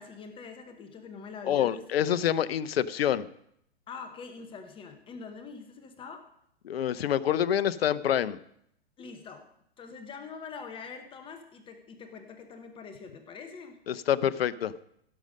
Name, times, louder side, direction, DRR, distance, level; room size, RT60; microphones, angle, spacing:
voice 1, 0.0-1.9 3.9-6.2 9.0-9.4 9.8-13.8, left 5 dB, 15° left, 6 dB, 0.9 m, -44 dB
voice 2, 1.4-3.3 6.7-8.4 13.9-14.7, left 10 dB, 65° left, 15 dB, 0.7 m, -27 dB
16.0 x 6.6 x 5.4 m, 0.72 s
hypercardioid pair, 130°, 32 cm